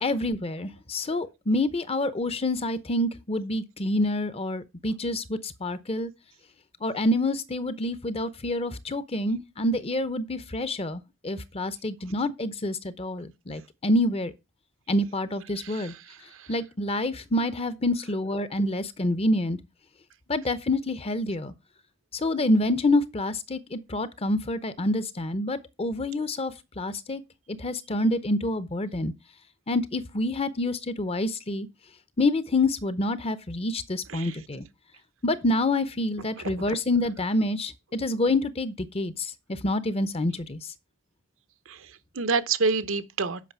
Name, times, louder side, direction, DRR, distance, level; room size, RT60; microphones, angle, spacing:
voice 1, 0.0-6.1 6.8-14.3 14.9-15.9 16.5-19.6 20.3-21.5 22.1-27.2 27.6-29.1 29.7-31.7 32.2-34.6 35.2-40.6, left 1 dB, 30° left, 0.8 m, -27 dB
voice 2, 15.5-16.5 34.1-34.4 36.4-36.8 41.7-43.4, right 4 dB, 80° right, 0.9 m, -29 dB
8.4 x 5.4 x 5.5 m
head